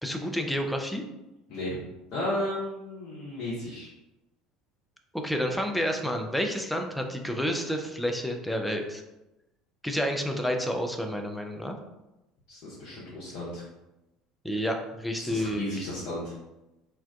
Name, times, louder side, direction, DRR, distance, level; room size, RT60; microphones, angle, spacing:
voice 1, 0.0-1.0 5.1-9.0 9.8-11.7 14.4-15.7, equal, 5° left, 3 dB, 0.3 m, -29 dB
voice 2, 1.5-1.8 2.1-3.9 12.5-13.6 15.1-16.3, left 1 dB, 50° left, -8 dB, 0.6 m, -34 dB
2.4 x 2.2 x 2.3 m, 0.95 s
figure-of-eight pair, 65°, 0 cm